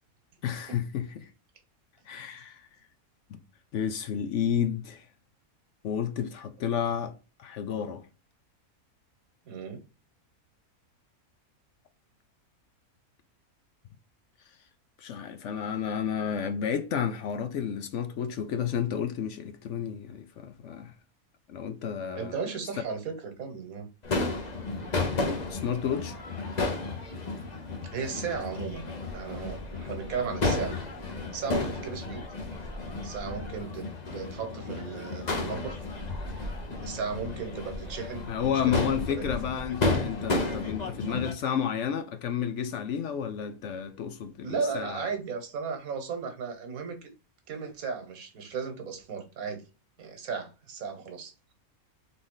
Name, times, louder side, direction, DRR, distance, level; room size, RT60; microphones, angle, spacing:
voice 1, 0.4-1.3 2.1-2.7 3.7-5.0 5.8-7.1 7.4-8.1 15.0-20.9 21.5-22.3 25.3-26.2 38.3-45.1, left 8 dB, 65° left, 0.8 m, -31 dB
voice 2, 9.5-9.8 22.2-23.9 27.9-30.8 31.3-32.2 33.0-35.8 36.8-38.3 38.6-39.4 44.4-47.1 47.5-49.6 50.0-51.5, right 5 dB, 70° right, 1.5 m, -35 dB
Crowd / Fireworks, 24.0-41.3, left 3 dB, 35° left, 0.8 m, -33 dB
3.9 x 3.3 x 3.7 m
omnidirectional pair, 1.5 m